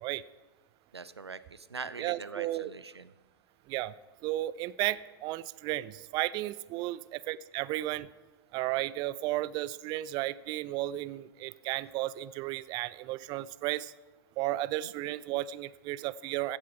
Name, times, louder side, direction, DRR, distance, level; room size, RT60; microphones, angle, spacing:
voice 1, 0.9-3.1, right 4 dB, 85° right, 16 dB, 0.5 m, -42 dB
voice 2, 2.0-2.7 3.7-4.0 4.2-8.1 8.5-13.9 14.4-16.6, right 16 dB, 35° right, 19 dB, 0.4 m, -34 dB
15.5 x 8.4 x 4.6 m, 1.2 s
figure-of-eight pair, 95°, 13 cm